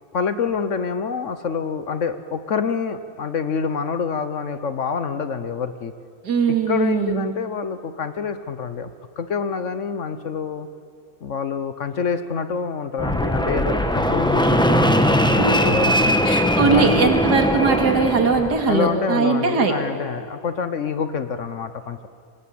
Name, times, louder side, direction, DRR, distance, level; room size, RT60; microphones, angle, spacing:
voice 1, 0.1-5.9 6.7-8.9 9.2-10.7 11.2-15.1 15.6-16.2 16.6-17.1 18.7-22.1, left 6 dB, 55° left, 11 dB, 1.1 m, -26 dB
voice 2, 6.2-7.3 15.4-15.7 16.3-19.7, right 5 dB, 75° right, 4 dB, 2.7 m, -20 dB
Fixed-wing aircraft airplane, 13.0-18.6, equal, 5° left, 0.9 m, -20 dB
26.0 x 19.0 x 8.5 m, 2.3 s
omnidirectional pair, 1.8 m